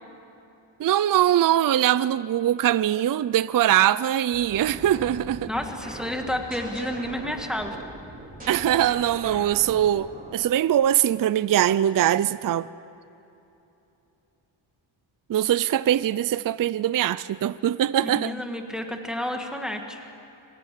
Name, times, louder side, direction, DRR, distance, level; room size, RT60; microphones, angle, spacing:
voice 1, 0.8-5.5 8.5-12.7 15.3-18.3, right 11 dB, 45° right, 0.4 m, -22 dB
sound 1, 4.3-10.5, right 1 dB, 15° right, 4.9 m, -40 dB
voice 2, 5.5-7.8 18.0-20.1, equal, ahead, 1.5 m, -30 dB
24.0 x 16.0 x 9.9 m
wide cardioid pair, 135°, 49 cm